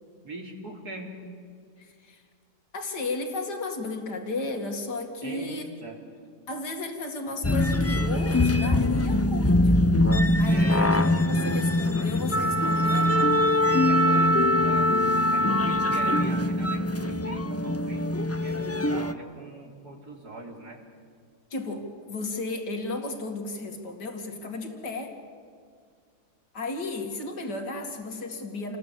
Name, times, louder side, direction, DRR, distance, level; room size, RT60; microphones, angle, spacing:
voice 1, 0.2-1.2 5.2-6.0 10.4-11.0 13.9-14.2 14.6-20.8, right 1 dB, 65° right, 1 dB, 4.0 m, -41 dB
voice 2, 1.8-2.2 2.7-5.7 6.5-10.0 10.4-10.9 11.3-13.6 14.1-14.3 18.6-19.0 21.5-25.2 26.5-28.8, left 2 dB, 90° left, 4 dB, 2.9 m, -34 dB
sound 1, 7.4-19.1, left 1 dB, 20° left, 0.3 m, -23 dB
28.5 x 20.0 x 8.5 m, 2.2 s
omnidirectional pair, 1.7 m